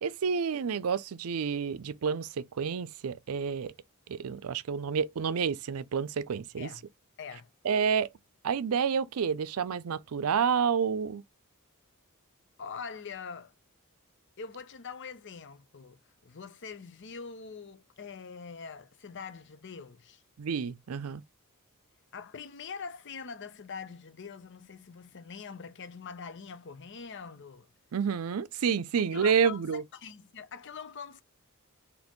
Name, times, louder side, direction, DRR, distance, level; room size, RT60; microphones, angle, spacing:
voice 1, 0.0-3.7 4.1-6.7 7.6-8.1 8.4-11.2 20.4-21.2 27.9-29.8, right 6 dB, 80° right, 0.5 m, -29 dB
voice 2, 7.2-7.5 12.6-13.5 14.4-20.2 22.1-27.7 29.1-31.2, left 5 dB, 55° left, 0.7 m, -43 dB
4.2 x 2.9 x 3.0 m
head